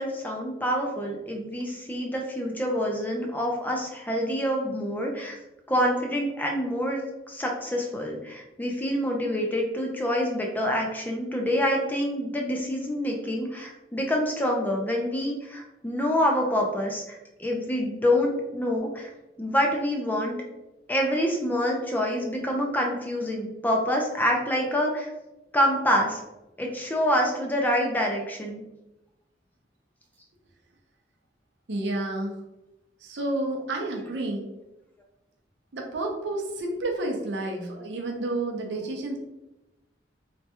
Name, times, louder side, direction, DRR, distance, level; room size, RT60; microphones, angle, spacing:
voice 1, 0.0-5.3 5.7-19.1 19.4-20.4 20.9-25.1 25.5-26.2 26.6-28.6, equal, 10° left, 0 dB, 0.3 m, -26 dB
voice 2, 31.7-32.4 33.0-34.5 35.7-39.2, right 2 dB, 75° right, 1 dB, 0.6 m, -30 dB
3.2 x 2.2 x 2.8 m, 0.99 s
head